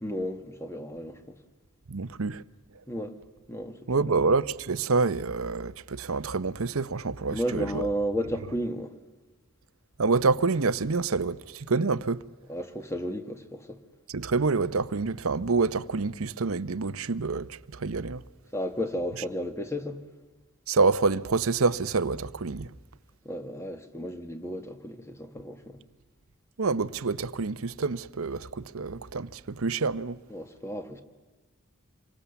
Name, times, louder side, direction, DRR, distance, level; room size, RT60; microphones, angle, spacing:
voice 1, 0.0-1.3 2.9-3.2 3.5-3.8 7.3-8.9 12.5-13.8 18.5-20.0 23.2-25.8 30.3-31.0, equal, 15° left, 1.6 m, -33 dB
voice 2, 1.9-2.4 3.9-7.9 10.0-12.2 14.1-18.2 20.7-22.7 26.6-30.2, right 4 dB, 80° right, 0.8 m, -27 dB
27.5 x 23.5 x 7.1 m
head